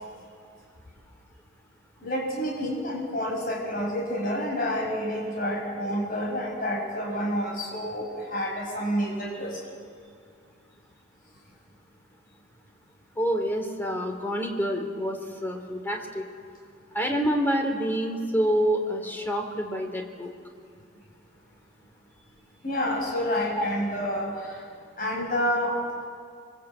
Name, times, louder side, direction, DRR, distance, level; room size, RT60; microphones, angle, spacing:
voice 1, 2.0-9.6 22.6-24.6 25.0-25.8, equal, 45° left, -2 dB, 6.0 m, -29 dB
voice 2, 13.2-16.2 16.9-20.3 23.6-23.7, equal, 10° left, 3 dB, 2.9 m, -27 dB
27.5 x 24.0 x 8.6 m, 2.2 s
head